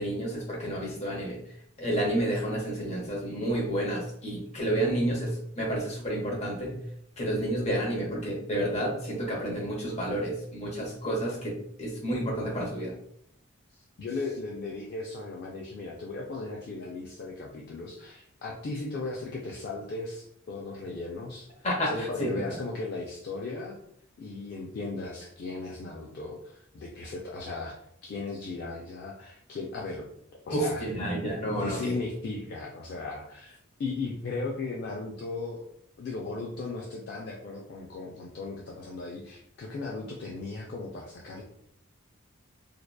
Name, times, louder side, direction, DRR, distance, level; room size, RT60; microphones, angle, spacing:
voice 1, 0.0-1.4 1.8-6.8 7.2-11.5 11.8-12.9 21.6-22.3 30.5-31.9, right 1 dB, 30° left, -3 dB, 0.7 m, -30 dB
voice 2, 13.7-23.8 24.2-27.8 28.0-30.1 30.4-30.8 31.6-35.7 36.0-41.4, left 3 dB, 50° left, -1 dB, 0.3 m, -37 dB
2.6 x 2.1 x 2.2 m, 0.72 s
head